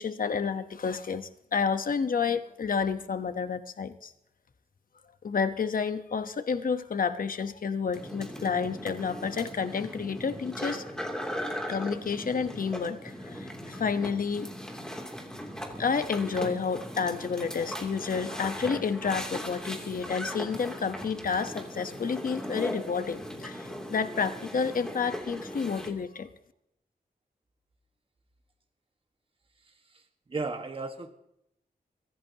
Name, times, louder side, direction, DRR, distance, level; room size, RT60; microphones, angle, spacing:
voice 1, 0.0-4.1 5.2-10.8 11.7-14.5 15.8-26.3, left 5 dB, 60° left, 10 dB, 1.1 m, -30 dB
sound 1, 7.9-25.9, equal, 5° left, 2.9 m, -38 dB
voice 2, 29.6-31.1, right 3 dB, 35° right, 5 dB, 1.6 m, -36 dB
24.0 x 16.5 x 2.9 m, 0.80 s
wide cardioid pair, 130°, 16 cm